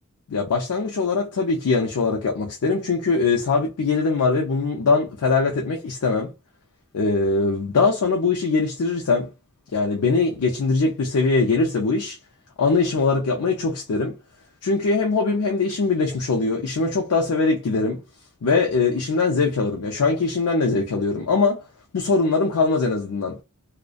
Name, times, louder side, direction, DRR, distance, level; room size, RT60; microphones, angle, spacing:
voice 1, 0.3-6.3 6.9-9.3 9.7-12.2 12.6-14.1 14.6-18.0 18.4-21.6 21.9-23.4, left 4 dB, 85° left, 0.5 m, -22 dB
2.5 x 2.1 x 2.4 m
head